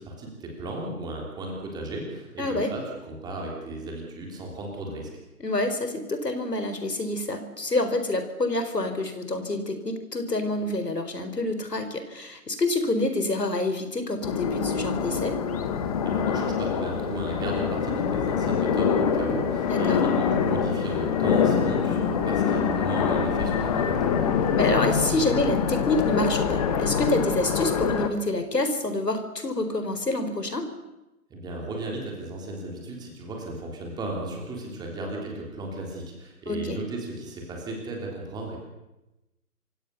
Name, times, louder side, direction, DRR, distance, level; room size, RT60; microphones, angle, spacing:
voice 1, 0.0-5.1 16.0-24.0 31.3-38.6, right 1 dB, 10° right, 0 dB, 3.5 m, -35 dB
voice 2, 2.4-2.7 5.4-15.4 19.7-20.0 24.6-30.7 36.5-36.8, left 2 dB, 90° left, 9 dB, 4.4 m, -27 dB
sound 1, 14.2-28.1, left 7 dB, 25° left, 1.5 m, -25 dB
27.5 x 17.0 x 6.9 m, 1.0 s
figure-of-eight pair, 150°, 47 cm